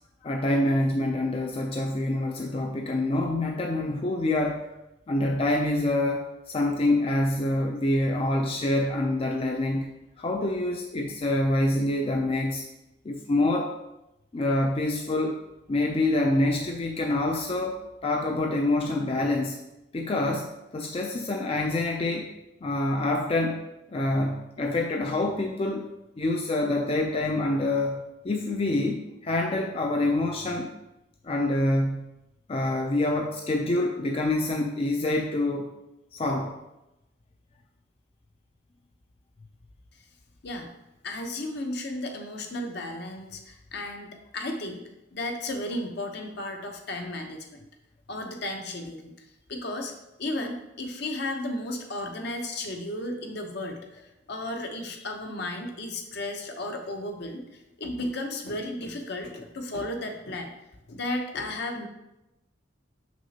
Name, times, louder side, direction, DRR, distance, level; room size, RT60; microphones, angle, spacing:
voice 1, 0.2-4.7 5.1-9.9 10.2-12.6 13.0-13.8 14.3-15.4 15.7-19.6 19.9-22.3 22.6-23.6 23.9-25.9 26.2-30.7 31.2-32.1 32.5-35.7 36.1-36.6, left 2 dB, 30° left, 2 dB, 0.4 m, -26 dB
voice 2, 41.0-44.8 45.1-47.7 48.1-49.1 49.5-49.9 50.2-57.4 57.8-60.5 60.9-61.9, left 1 dB, 60° left, 4 dB, 0.8 m, -34 dB
6.1 x 5.8 x 2.8 m, 0.93 s
head